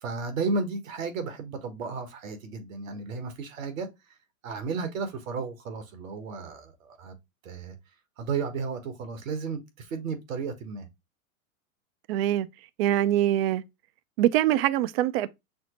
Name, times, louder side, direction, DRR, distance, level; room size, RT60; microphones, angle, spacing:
voice 1, 0.0-3.9 4.4-7.1 7.4-7.7 8.2-10.9, right 4 dB, 70° right, 1.3 m, -33 dB
voice 2, 12.1-12.5 12.8-13.6 14.2-15.3, right 13 dB, 50° right, 0.4 m, -23 dB
6.0 x 2.0 x 2.9 m
hypercardioid pair, 115°, 40 cm